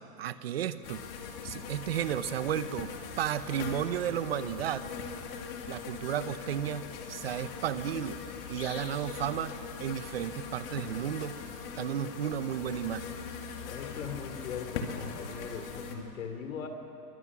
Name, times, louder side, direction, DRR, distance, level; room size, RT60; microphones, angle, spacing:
voice 1, 0.2-1.0 1.4-2.9 3.2-4.8 5.7-8.2 8.5-11.4 11.8-13.2, right 10 dB, 40° right, 13 dB, 0.8 m, -33 dB
sound 1, 0.8-15.9, left 6 dB, 35° left, 2.3 m, -41 dB
voice 2, 13.7-16.7, left 6 dB, 55° left, 6 dB, 2.8 m, -39 dB
25.5 x 24.0 x 6.1 m, 2.9 s
hypercardioid pair, 160°, 49 cm